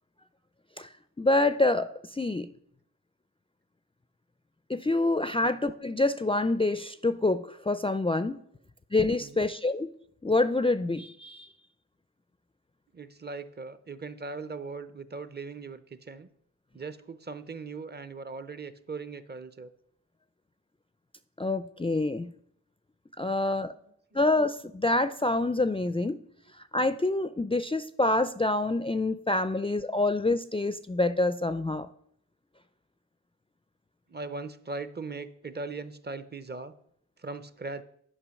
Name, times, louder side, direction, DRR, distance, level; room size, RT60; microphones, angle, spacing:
voice 1, 1.2-2.5 4.7-8.4 8.9-9.9 10.2-11.5 21.4-22.3 23.2-23.7 24.1-26.2 26.7-31.9, left 2 dB, 20° left, 12 dB, 0.4 m, -26 dB
voice 2, 12.9-16.3 16.7-19.7 23.6-23.8 34.1-36.7 37.2-37.8, right 4 dB, 30° right, 13 dB, 0.6 m, -39 dB
9.8 x 5.2 x 6.3 m, 0.69 s
wide cardioid pair, 100°, 32 cm